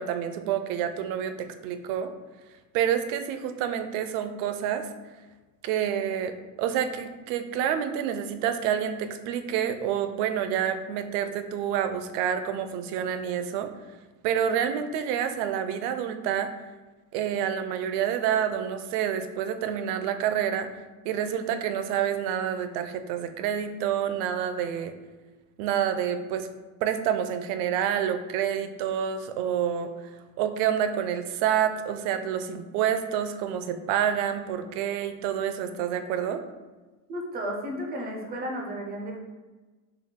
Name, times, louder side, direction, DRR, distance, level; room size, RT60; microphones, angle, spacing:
voice 1, 0.0-2.1 2.7-4.9 5.6-13.7 14.2-16.5 17.1-20.7 21.0-24.9 25.6-26.5 26.8-29.9 30.4-36.4, right 9 dB, 75° right, 9 dB, 0.5 m, -28 dB
voice 2, 37.1-39.2, equal, 25° right, 1 dB, 0.3 m, -33 dB
3.9 x 2.2 x 3.6 m, 1.2 s
cardioid pair, 145°, 45 cm